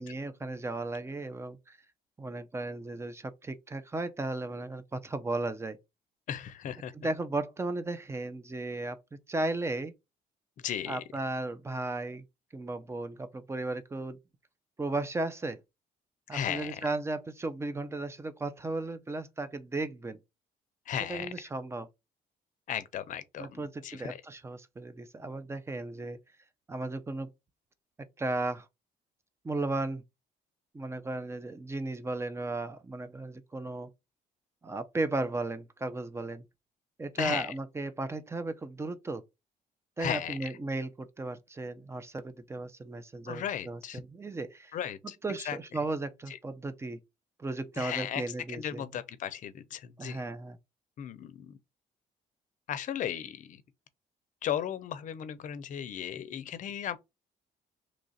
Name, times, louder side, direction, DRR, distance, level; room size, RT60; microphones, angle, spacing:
voice 1, 0.0-1.8 2.2-5.8 6.9-9.0 9.3-9.9 10.9-12.2 12.5-14.2 14.8-15.6 16.3-20.2 21.1-21.9 23.4-26.2 26.7-27.3 28.2-28.7 29.4-30.0 30.7-33.9 34.6-36.4 37.0-39.2 40.0-44.8 45.2-47.0 47.4-48.8 50.0-50.6, right 2 dB, 15° right, 0.5 m, -35 dB
voice 2, 6.3-6.9 10.6-11.0 16.3-16.9 20.9-21.5 22.7-24.2 37.2-37.6 40.0-40.6 43.3-44.0 44.7-45.2 45.4-45.8 46.3-46.4 47.8-48.2 48.5-50.2 51.0-51.6 52.7-53.6 54.4-57.0, left 9 dB, 55° left, 0.6 m, -36 dB
3.1 x 2.5 x 4.0 m
cardioid pair, 110°, 16 cm